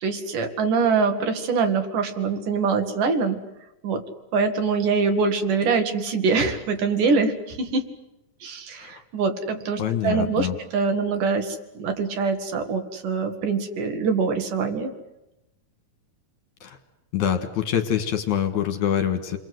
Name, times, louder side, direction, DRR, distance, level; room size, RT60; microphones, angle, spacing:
voice 1, 0.0-3.4 3.8-4.0 4.3-7.9 8.4-10.5 10.7-14.9, right 4 dB, 65° right, 6 dB, 3.2 m, -24 dB
voice 2, 9.8-10.6 16.6-16.8 17.1-19.4, left 9 dB, 65° left, 7 dB, 2.8 m, -25 dB
29.0 x 22.0 x 7.9 m, 0.94 s
omnidirectional pair, 4.1 m